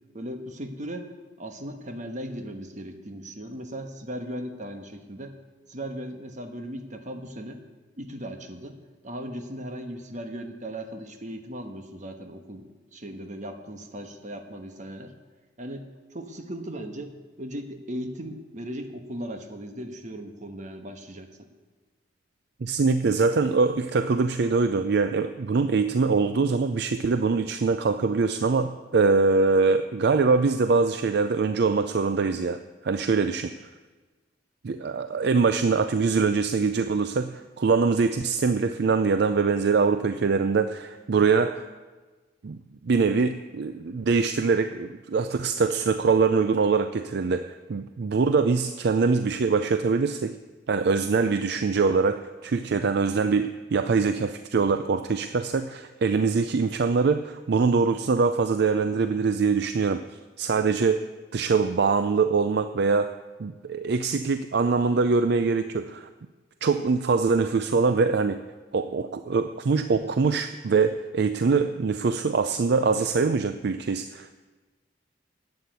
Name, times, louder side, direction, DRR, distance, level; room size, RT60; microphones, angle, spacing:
voice 1, 0.1-1.1 1.4-5.4 5.7-7.6 8.0-8.8 9.0-12.6 12.9-15.1 15.6-21.5, equal, 40° right, 5 dB, 1.3 m, -37 dB
voice 2, 22.6-33.5 34.6-41.7 42.4-50.4 50.7-60.0 60.4-61.0 61.3-63.1 63.4-66.1 66.6-68.4 68.7-74.3, right 4 dB, 60° right, 10 dB, 0.4 m, -23 dB
11.5 x 8.6 x 8.1 m, 1.3 s
head